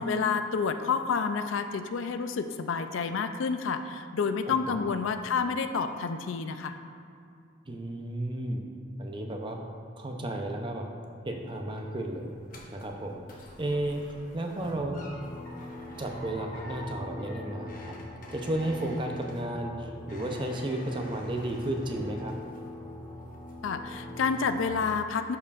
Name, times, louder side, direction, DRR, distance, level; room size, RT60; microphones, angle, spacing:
voice 1, 0.0-6.8 23.6-25.4, left 5 dB, 75° left, 9 dB, 0.4 m, -29 dB
voice 2, 4.5-4.8 7.7-8.6 9.0-9.6 10.0-10.9 11.2-12.3 12.7-15.0 16.0-17.9 18.3-22.3, right 1 dB, 25° right, 2 dB, 0.5 m, -33 dB
sound 1, 11.3-22.9 23.2-23.7 24.1-24.2, left 1 dB, 40° left, 0.9 m, -49 dB
sound 2, 14.6-24.7, left 1 dB, 20° left, 0.6 m, -43 dB
12.0 x 4.6 x 2.4 m, 2.4 s
head